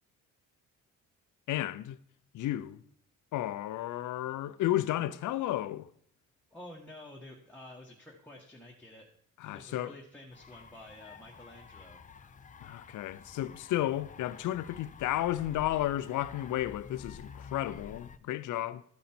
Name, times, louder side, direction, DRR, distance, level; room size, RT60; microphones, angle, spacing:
voice 1, 1.5-2.0 2.3-2.8 3.3-5.9 9.4-9.9 12.6-18.8, left 14 dB, 75° left, 0.6 m, -33 dB
voice 2, 6.5-9.1 9.5-12.0, left 1 dB, 5° left, 1.2 m, -50 dB
sound 1, 10.3-18.2, left 5 dB, 25° left, 0.5 m, -50 dB
12.5 x 5.2 x 4.4 m
cardioid pair, 100°, 31 cm